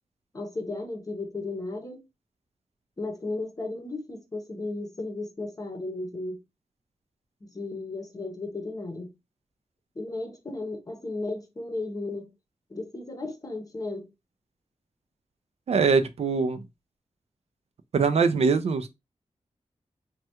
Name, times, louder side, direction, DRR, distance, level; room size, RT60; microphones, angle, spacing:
voice 1, 0.3-2.0 3.0-6.4 7.4-9.1 10.0-12.3 12.7-14.1, left 2 dB, 30° left, 0.7 m, -34 dB
voice 2, 15.7-16.6 17.9-18.9, right 5 dB, 60° right, 0.4 m, -22 dB
3.2 x 2.2 x 2.8 m
wide cardioid pair, 115°, 12 cm